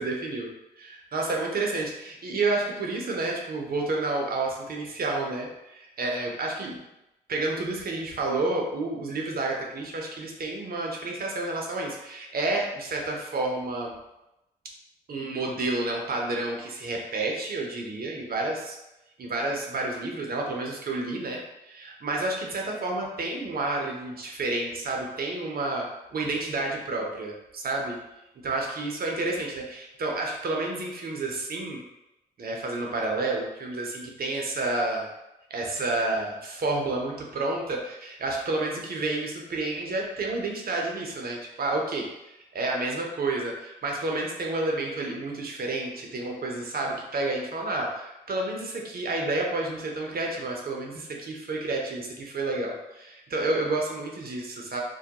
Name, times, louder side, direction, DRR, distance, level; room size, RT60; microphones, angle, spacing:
voice 1, 0.0-0.5 0.8-6.8 7.3-13.9 15.1-18.8 19.2-28.0 28.4-31.8 32.4-35.1 35.5-54.8, right 2 dB, 45° right, 0 dB, 0.7 m, -30 dB
2.2 x 2.1 x 2.8 m, 0.94 s
hypercardioid pair, 40°, 21 cm